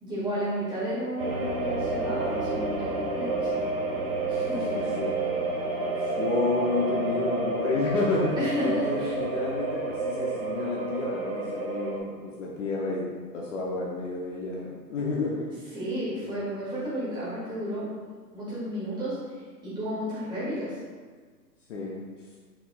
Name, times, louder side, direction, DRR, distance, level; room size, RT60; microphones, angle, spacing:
voice 1, 0.0-3.5 4.2-4.9 8.3-9.1 15.7-17.8 18.3-20.7, equal, 10° right, -11 dB, 1.3 m, -32 dB
sound 1, 1.2-12.0, right 3 dB, 35° right, 0.5 m, -30 dB
voice 2, 4.6-5.2 6.2-8.4 8.6-13.1 13.3-15.5 16.2-16.3 21.7-22.0, left 3 dB, 50° left, -3 dB, 0.7 m, -30 dB
4.6 x 3.7 x 2.2 m, 1.5 s
figure-of-eight pair, 125°, 50 cm